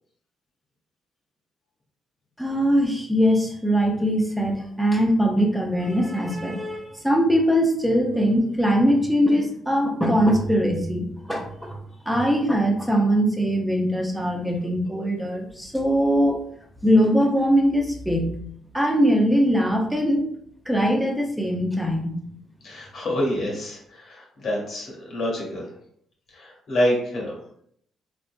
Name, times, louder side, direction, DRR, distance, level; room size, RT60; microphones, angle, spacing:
voice 1, 2.4-11.8 12.1-16.4 16.8-18.3 18.7-20.3 20.7-22.2, equal, 5° right, 2 dB, 0.7 m, -21 dB
voice 2, 22.6-25.6 26.4-27.3, equal, 60° left, -2 dB, 1.3 m, -27 dB
3.9 x 2.5 x 2.2 m, 0.68 s
cardioid pair, 90°, 0 cm